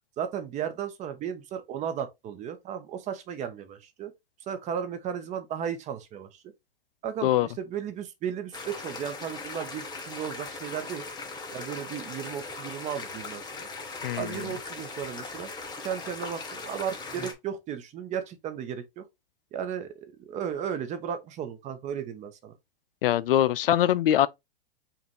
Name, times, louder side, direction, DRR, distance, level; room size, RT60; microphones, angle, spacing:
voice 1, 0.2-4.1 4.5-6.4 7.0-11.0 11.5-13.7 14.1-15.5 15.8-19.0 19.5-22.5, right 8 dB, 25° right, 0.7 m, -35 dB
sound 1, 8.5-17.3, left 3 dB, 15° left, 0.8 m, -39 dB
voice 2, 14.0-14.5 23.0-24.3, left 12 dB, 70° left, 0.5 m, -23 dB
5.0 x 2.5 x 3.1 m
hypercardioid pair, 115°, 29 cm